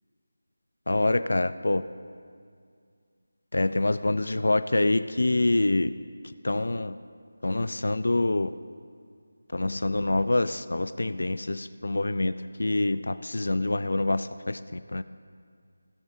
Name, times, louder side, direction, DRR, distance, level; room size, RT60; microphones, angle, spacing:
voice 1, 0.9-1.9 3.5-5.9 6.4-7.0 7.4-8.5 9.5-12.3 12.6-15.0, left 2 dB, 70° left, 13 dB, 0.4 m, -26 dB
17.0 x 8.3 x 2.7 m, 2.2 s
figure-of-eight pair, 180°, 0 cm